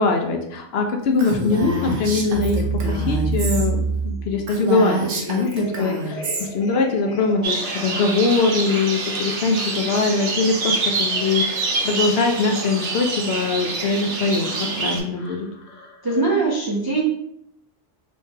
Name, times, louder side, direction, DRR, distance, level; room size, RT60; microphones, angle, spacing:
voice 1, 0.0-11.4 11.8-15.5, left 3 dB, 65° left, 3 dB, 0.8 m, -22 dB
Female speech woman speaking, 1.2-3.7 4.0-4.1 4.4-6.5, right 2 dB, 90° right, 1.1 m, -28 dB
sound 1, 1.3-16.4, right 2 dB, 30° left, 0.9 m, -31 dB
sound 2, 7.4-15.0, right 3 dB, 55° right, 0.8 m, -26 dB
voice 2, 16.0-17.0, right 3 dB, 35° right, -4 dB, 0.4 m, -21 dB
3.3 x 3.2 x 2.8 m, 0.72 s
omnidirectional pair, 1.2 m